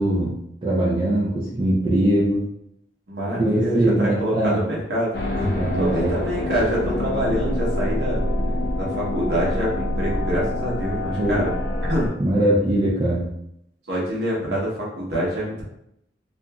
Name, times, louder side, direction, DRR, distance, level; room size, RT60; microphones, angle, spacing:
voice 1, 0.0-2.4 3.4-4.6 5.5-6.2 11.2-11.5 12.2-13.3, right 1 dB, 30° right, -7 dB, 0.4 m, -21 dB
voice 2, 3.1-8.2 8.8-11.5 11.9-12.1 13.9-15.6, equal, 65° right, -5 dB, 0.9 m, -26 dB
sound 1, 5.1-12.1, left 1 dB, 65° left, 0.6 m, -26 dB
2.8 x 2.5 x 2.3 m, 0.76 s
head